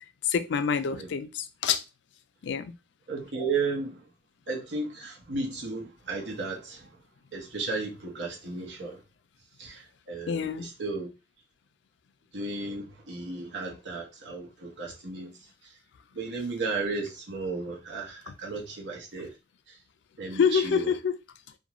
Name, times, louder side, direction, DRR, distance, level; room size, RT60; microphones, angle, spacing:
voice 1, 0.3-1.8 2.4-2.7 10.3-10.7 20.3-21.2, left 6 dB, 80° left, 0.3 m, -26 dB
voice 2, 3.1-4.0 4.5-7.0 7.3-9.0 9.6-11.1 12.3-15.3 15.6-15.7 16.1-19.3 19.7-19.8 20.2-20.9, right 3 dB, 90° right, 0.9 m, -34 dB
2.5 x 2.2 x 2.9 m
head